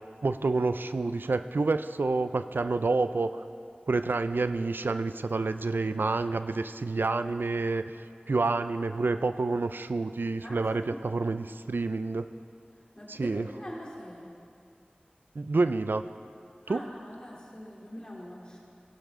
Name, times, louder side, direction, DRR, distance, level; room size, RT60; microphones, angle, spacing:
voice 1, 0.2-3.3 3.9-7.8 8.3-12.2 13.1-13.5 15.4-16.0 16.7-16.9, right 3 dB, 90° right, 11 dB, 0.4 m, -28 dB
voice 2, 10.4-11.1 12.9-14.3 16.7-18.6, equal, 25° left, -4 dB, 3.1 m, -43 dB
17.0 x 11.5 x 3.7 m, 2.4 s
wide cardioid pair, 45°, 3 cm